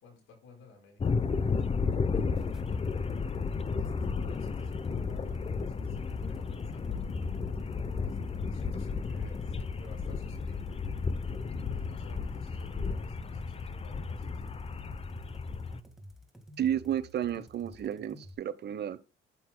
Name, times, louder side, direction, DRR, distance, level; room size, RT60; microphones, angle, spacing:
voice 1, 0.0-3.0 3.8-7.1 8.0-10.8 11.7-14.4, left 4 dB, 90° left, 4.5 m, -55 dB
sound 1, 1.0-15.8, left 5 dB, 30° left, 0.7 m, -33 dB
sound 2, 2.3-18.3, right 1 dB, ahead, 1.7 m, -51 dB
voice 2, 16.6-19.0, right 10 dB, 60° right, 0.8 m, -32 dB
8.5 x 8.4 x 2.2 m
cardioid pair, 90°, 20 cm